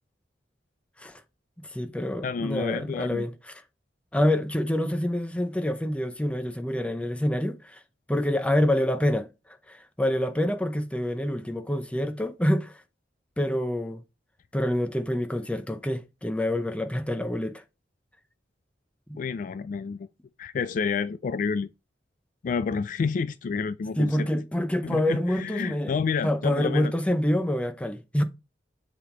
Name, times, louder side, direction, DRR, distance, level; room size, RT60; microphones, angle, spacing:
voice 1, 1.6-3.3 4.1-7.8 8.1-9.3 9.7-12.8 13.4-14.0 14.5-17.6 19.1-19.2 24.0-26.0 26.2-28.2, left 1 dB, 5° left, 0.7 m, -26 dB
voice 2, 2.2-3.3 19.2-20.1 20.4-21.7 22.4-24.3 24.8-26.9, left 5 dB, 50° left, 0.3 m, -29 dB
7.5 x 3.6 x 3.8 m
head